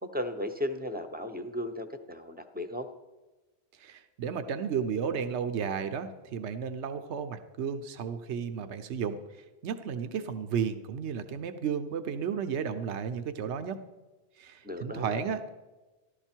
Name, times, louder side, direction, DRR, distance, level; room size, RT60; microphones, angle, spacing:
voice 1, 0.0-2.9 14.6-15.2, left 1 dB, 10° right, 8 dB, 0.8 m, -35 dB
voice 2, 3.8-13.8 14.4-15.5, right 7 dB, 80° right, 9 dB, 1.1 m, -33 dB
15.0 x 12.0 x 4.5 m, 1.2 s
omnidirectional pair, 1.1 m